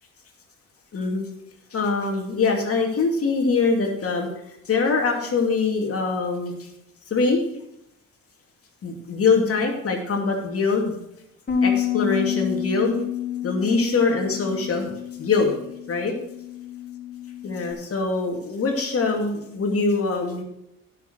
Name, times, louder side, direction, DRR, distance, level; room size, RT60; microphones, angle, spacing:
voice 1, 0.9-1.3 1.7-4.3 4.7-6.7 7.1-7.4 8.8-11.0 11.6-13.0 13.4-14.9 15.2-15.5 15.9-16.1 17.4-20.4, left 4 dB, 50° left, 1 dB, 2.5 m, -23 dB
Bass guitar, 11.5-17.7, left 9 dB, 35° left, 2.8 m, -29 dB
11.0 x 6.6 x 6.3 m, 0.82 s
cardioid pair, 90°, 30 cm